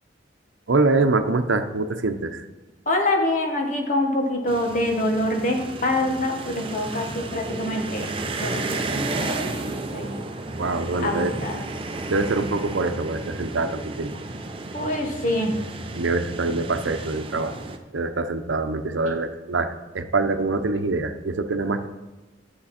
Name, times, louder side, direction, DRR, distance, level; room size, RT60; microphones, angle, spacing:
voice 1, 0.7-2.4 10.6-11.7 12.1-14.1 15.9-17.5 17.9-21.9, right 3 dB, 90° right, 8 dB, 0.8 m, -24 dB
voice 2, 2.9-8.1 8.4-9.5 9.9-10.2 11.0-11.6 14.7-15.5, left 1 dB, 45° left, 2 dB, 1.5 m, -25 dB
sound 1, 4.5-17.8, right 2 dB, 30° right, 0.7 m, -32 dB
11.5 x 7.5 x 4.3 m, 1.2 s
head